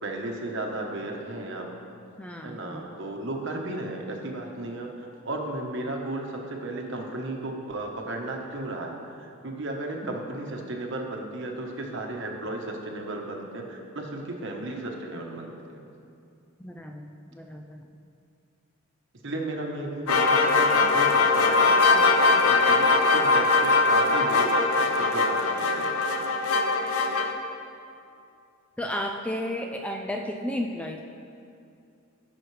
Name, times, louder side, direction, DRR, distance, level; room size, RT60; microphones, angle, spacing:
voice 1, 0.0-1.7 2.4-4.9 5.2-8.9 9.2-15.8 19.2-24.5 24.8-25.9, right 2 dB, 55° right, 1 dB, 1.1 m, -34 dB
voice 2, 2.2-2.9 10.0-10.2 16.6-17.9 28.8-31.0, left 1 dB, 5° left, 3 dB, 0.3 m, -33 dB
sound 1, 20.1-27.3, left 3 dB, 80° left, 0.7 m, -21 dB
15.0 x 6.3 x 3.3 m, 2.5 s
head